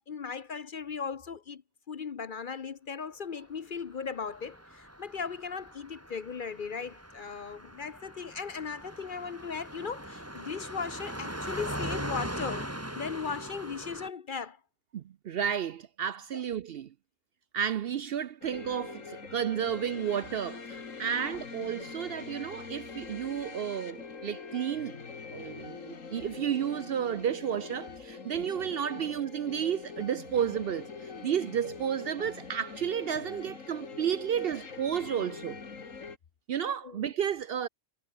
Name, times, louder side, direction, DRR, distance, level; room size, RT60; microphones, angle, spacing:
voice 1, 0.0-1.6 1.9-12.7 13.0-14.6 16.3-16.4 21.0-21.4 36.8-37.1, left 5 dB, 45° left, 0.8 m, -37 dB
Car passing by, 4.2-14.1, equal, 10° right, 4.2 m, -40 dB
voice 2, 14.9-16.9 17.5-25.0 25.3-35.6 36.5-37.7, right 9 dB, 60° right, 0.7 m, -32 dB
sound 1, 18.4-36.2, left 5 dB, 90° left, 2.5 m, -43 dB
omnidirectional pair, 1.3 m